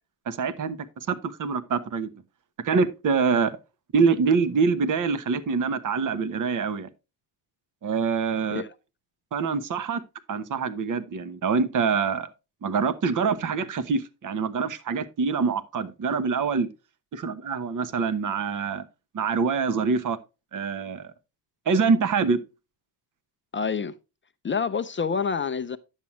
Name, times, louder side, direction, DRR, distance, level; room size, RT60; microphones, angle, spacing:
voice 1, 0.3-2.1 2.6-3.5 3.9-6.9 7.8-8.6 9.3-10.0 10.3-12.3 12.6-16.7 17.1-18.8 19.1-20.2 20.5-21.1 21.7-22.4, right 5 dB, 45° right, 1.0 m, -25 dB
voice 2, 23.5-24.0 24.4-25.8, left 5 dB, 30° left, 0.5 m, -27 dB
10.5 x 7.3 x 3.1 m
cardioid pair, 105°, 42 cm